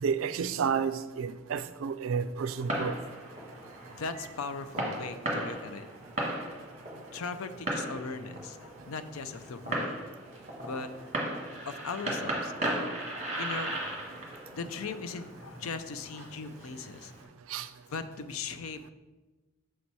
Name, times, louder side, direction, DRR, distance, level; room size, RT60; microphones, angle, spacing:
voice 1, 0.0-3.0 17.5-17.7, right 6 dB, 70° right, 0.3 m, -31 dB
Fireworks, 2.4-17.2, right 1 dB, 30° right, 1.1 m, -37 dB
voice 2, 3.9-5.9 7.1-10.0 10.6-10.9 11.7-12.5 13.4-13.9 14.5-17.1 17.9-18.8, left 4 dB, 80° left, 0.5 m, -38 dB
6.3 x 4.1 x 4.6 m
head